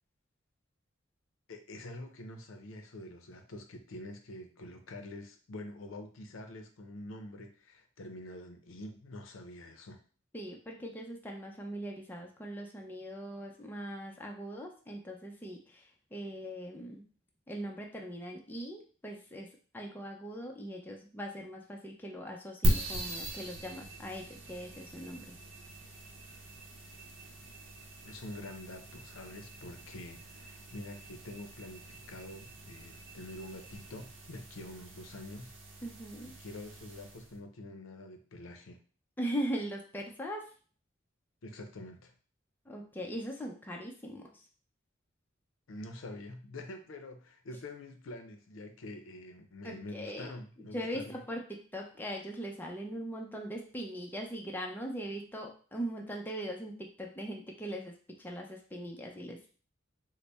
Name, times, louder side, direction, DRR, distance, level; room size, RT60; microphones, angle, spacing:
voice 1, 1.5-10.0 28.0-35.5 36.2-38.8 41.4-42.1 45.7-51.2, left 1 dB, 85° left, 6 dB, 0.6 m, -46 dB
voice 2, 10.3-15.6 16.1-17.0 17.5-19.5 19.7-25.4 35.8-36.4 39.2-40.4 42.7-44.3 49.6-50.3 50.7-59.5, equal, 10° left, 0 dB, 0.5 m, -40 dB
sound 1, 22.6-37.4, right 1 dB, 70° right, 0.7 m, -39 dB
4.0 x 2.1 x 3.3 m, 0.40 s
head